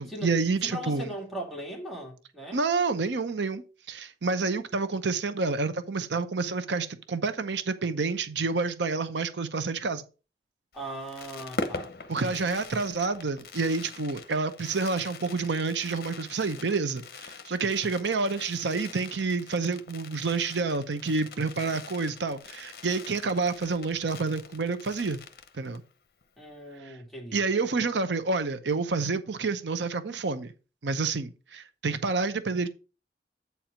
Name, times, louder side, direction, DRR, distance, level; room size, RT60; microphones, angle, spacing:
voice 1, 0.0-1.1 2.5-10.0 12.1-25.2 25.5-25.8 26.8-27.0 27.3-30.5 30.8-32.7, right 4 dB, 80° right, 0.7 m, -29 dB
voice 2, 0.6-2.6 10.7-11.9 12.2-12.5 26.4-27.5, right 1 dB, ahead, 1.8 m, -39 dB
Fireworks, 10.7-25.9 26.2-26.3 26.5-26.8, left 3 dB, 55° left, 0.8 m, -43 dB
8.3 x 4.4 x 5.0 m
head